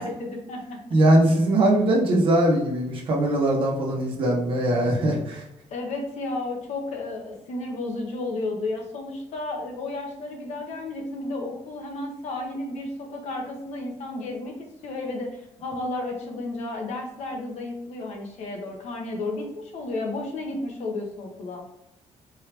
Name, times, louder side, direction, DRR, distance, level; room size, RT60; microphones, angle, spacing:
voice 1, 0.0-0.8 5.7-14.5 14.8-21.6, left 2 dB, 65° left, 1 dB, 1.1 m, -32 dB
voice 2, 0.9-5.4, right 1 dB, 45° right, -2 dB, 1.1 m, -21 dB
4.6 x 3.1 x 3.3 m, 0.84 s
cardioid pair, 175°, 12 cm